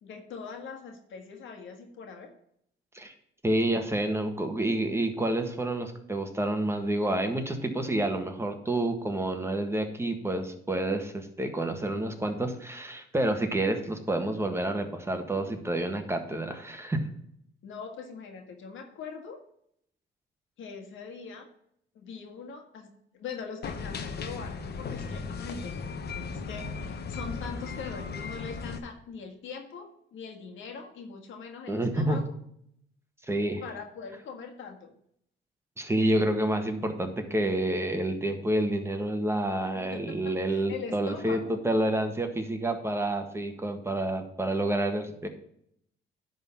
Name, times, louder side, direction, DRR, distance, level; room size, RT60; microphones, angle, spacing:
voice 1, 0.0-2.3 17.6-19.4 20.6-21.5 21.9-32.3 33.6-34.9 39.7-41.6, left 5 dB, 75° left, 4 dB, 1.7 m, -42 dB
voice 2, 3.4-17.0 31.7-32.2 33.3-33.6 35.8-45.3, right 1 dB, 15° right, 5 dB, 1.5 m, -29 dB
sound 1, 23.6-28.8, left 4 dB, 55° left, 1.1 m, -36 dB
10.5 x 3.9 x 7.1 m, 0.71 s
cardioid pair, 90°, 20 cm